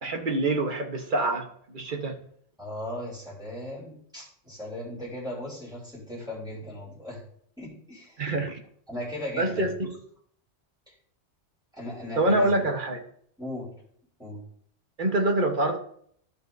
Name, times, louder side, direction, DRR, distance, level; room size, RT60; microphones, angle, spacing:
voice 1, 0.0-1.4 1.7-2.1 8.2-8.6 9.4-9.7 12.2-13.0 15.0-15.8, right 2 dB, 45° right, 4 dB, 1.2 m, -25 dB
voice 2, 2.6-7.2 7.6-8.2 8.9-9.7 11.7-12.5 13.4-13.7 14.2-14.4, left 1 dB, 5° right, -8 dB, 3.1 m, -37 dB
13.5 x 5.5 x 2.6 m, 0.64 s
omnidirectional pair, 1.2 m